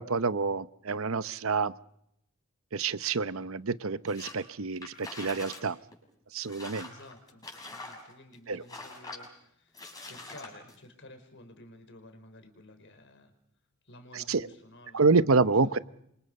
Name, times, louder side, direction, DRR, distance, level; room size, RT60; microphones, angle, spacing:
voice 1, 0.0-1.7 2.7-5.8 6.3-6.9 8.5-8.6 14.1-14.4 14.9-15.8, right 4 dB, 70° right, 15 dB, 0.9 m, -27 dB
sound 1, 4.1-4.4 4.7-5.6 5.9-6.0 6.4-8.3 8.7-9.3 9.7-10.7, left 2 dB, 20° left, 6.5 m, -44 dB
voice 2, 6.8-13.3 13.8-15.8, left 1 dB, 60° left, 7 dB, 5.1 m, -53 dB
28.5 x 25.5 x 5.5 m, 0.76 s
head